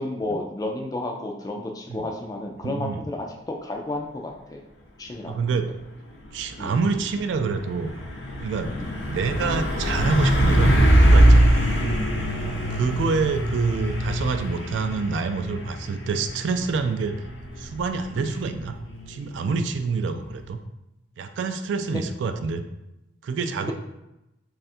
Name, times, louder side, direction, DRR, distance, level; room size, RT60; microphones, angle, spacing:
voice 1, 0.0-4.6 5.0-5.4 6.6-6.8 8.7-8.9 12.5-13.1 18.1-18.4 21.9-22.0, left 2 dB, 20° left, 1 dB, 0.3 m, -32 dB
voice 2, 2.6-3.0 5.3-5.7 6.3-7.9 8.4-8.7 9.1-11.7 12.4-17.2 17.6-18.8 19.1-20.6 21.2-22.6 23.2-23.7, right 4 dB, 70° right, 8 dB, 0.3 m, -27 dB
Truck, 6.2-20.5, equal, 70° left, 0.8 m, -23 dB
3.2 x 2.4 x 4.2 m, 0.92 s
head